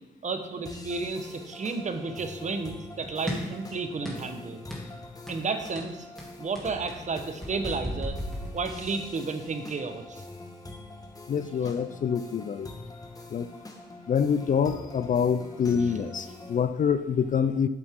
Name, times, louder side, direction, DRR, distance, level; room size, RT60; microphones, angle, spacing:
voice 1, 0.2-4.6 5.3-6.1 6.4-8.2 8.5-10.2 15.8-15.9, right 4 dB, 35° right, 7 dB, 1.0 m, -32 dB
sound 1, 0.7-16.7, left 2 dB, 20° left, 1.3 m, -44 dB
sound 2, 3.3-3.6 4.0-4.4 4.7-4.9 5.3-5.5 5.8-9.1, equal, ahead, 2.5 m, -36 dB
voice 2, 11.3-12.7 13.3-13.5 14.1-17.7, left 7 dB, 40° left, 12 dB, 0.4 m, -26 dB
8.3 x 7.7 x 3.6 m, 1.0 s
cardioid pair, 90°, 20 cm